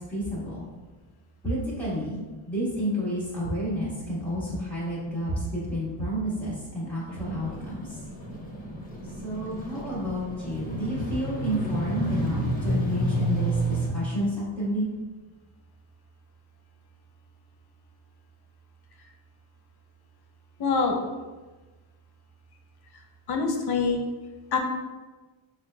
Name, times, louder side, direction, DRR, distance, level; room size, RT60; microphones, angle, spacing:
voice 1, 0.1-0.7 1.4-2.2 2.5-8.0 9.2-14.9, equal, ahead, -11 dB, 1.3 m, -30 dB
sound 1, 7.0-13.9, right 1 dB, 15° left, 0.7 m, -31 dB
voice 2, 20.6-21.0 23.3-24.0 24.5-24.6, left 4 dB, 50° left, 2 dB, 0.6 m, -24 dB
5.6 x 2.5 x 2.2 m, 1.2 s
cardioid pair, 130°, 49 cm